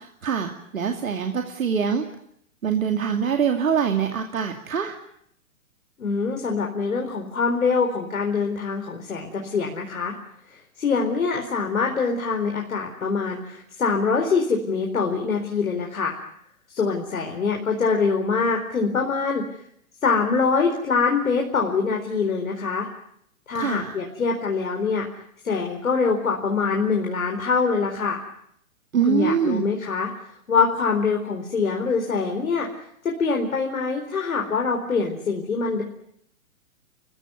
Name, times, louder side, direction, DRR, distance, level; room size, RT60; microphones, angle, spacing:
voice 1, 0.0-2.0 2.6-4.9 23.5-23.9 28.9-29.6, right 7 dB, 75° right, 4 dB, 2.6 m, -24 dB
voice 2, 6.0-10.1 10.8-16.2 16.7-19.4 20.0-22.9 23.5-25.1 25.4-28.2 29.1-30.1 30.5-32.7 33.0-35.8, left 5 dB, 75° left, 1 dB, 4.4 m, -24 dB
28.5 x 16.0 x 9.7 m, 0.71 s
hypercardioid pair, 125°, 42 cm